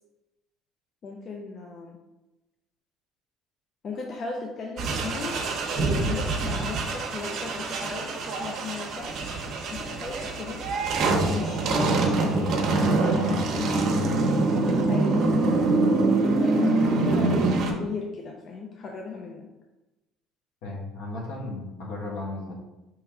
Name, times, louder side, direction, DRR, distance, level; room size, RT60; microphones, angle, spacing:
voice 1, 1.0-2.0 3.8-5.4 5.8-9.1 9.7-10.6 11.3-15.2 16.0-19.5, left 4 dB, 45° left, 0 dB, 0.6 m, -37 dB
sound 1, 4.8-17.7, right 3 dB, 55° right, 0.7 m, -25 dB
voice 2, 20.6-22.5, left 2 dB, 80° left, -2 dB, 1.3 m, -35 dB
4.6 x 3.1 x 3.6 m, 1.0 s
supercardioid pair, 95°, 0 cm